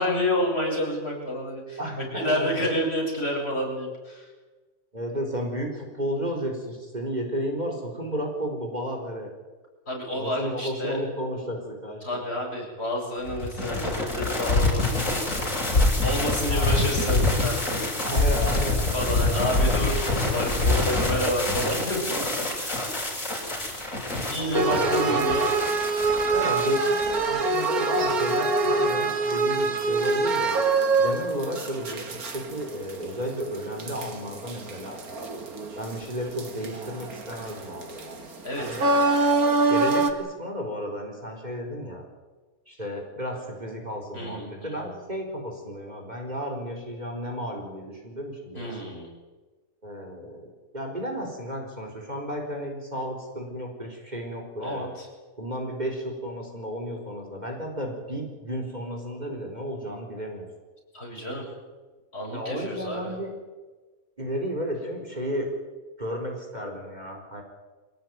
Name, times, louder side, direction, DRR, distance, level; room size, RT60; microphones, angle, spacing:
voice 1, 0.0-4.3 9.9-11.0 12.0-15.0 16.0-17.7 18.9-22.2 22.5-22.9 24.3-25.5 38.4-39.1 44.1-44.9 48.5-49.1 54.6-55.1 60.9-61.5 62.1-63.1, left 1 dB, 45° left, -1 dB, 8.1 m, -29 dB
voice 2, 1.8-2.7 4.9-9.3 10.1-12.2 16.5-17.3 18.0-18.8 24.4-25.4 26.3-30.5 31.0-35.0 35.8-38.2 38.6-38.8 39.7-42.0 42.7-48.7 49.8-50.5 50.7-54.9 55.4-60.5 62.3-63.3 64.2-65.5 66.0-67.4, equal, 30° right, 1 dB, 4.4 m, -33 dB
sound 1, 13.3-28.5, left 2 dB, 60° left, 6.4 m, -26 dB
sound 2, 24.5-36.1 36.4-40.1, right 3 dB, 90° right, 2.6 m, -25 dB
25.0 x 17.5 x 9.5 m, 1.3 s
omnidirectional pair, 1.5 m